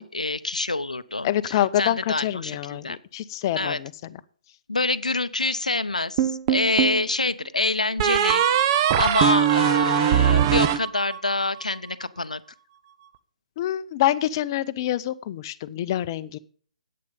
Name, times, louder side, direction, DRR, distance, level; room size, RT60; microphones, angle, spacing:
voice 1, 0.0-3.0 3.6-3.8 4.7-12.4, left 3 dB, 85° left, 15 dB, 0.7 m, -26 dB
voice 2, 1.2-3.9 13.6-16.4, left 12 dB, 35° left, 11 dB, 0.6 m, -26 dB
sound 1, 6.2-7.0 8.0-11.5, right 10 dB, 30° right, 0.7 m, -21 dB
10.5 x 8.6 x 5.3 m, 0.43 s
figure-of-eight pair, 140°, 4 cm